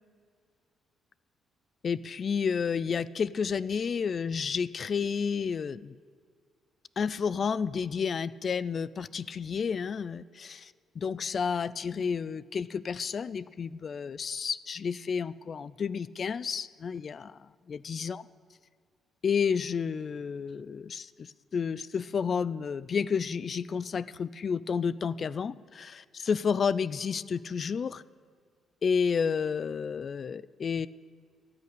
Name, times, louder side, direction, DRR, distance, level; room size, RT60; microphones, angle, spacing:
voice 1, 1.8-5.9 7.0-18.2 19.2-28.0 28.8-30.9, left 6 dB, 45° left, 19 dB, 0.4 m, -31 dB
13.5 x 6.8 x 9.7 m, 2.1 s
cardioid pair, 90°, 0 cm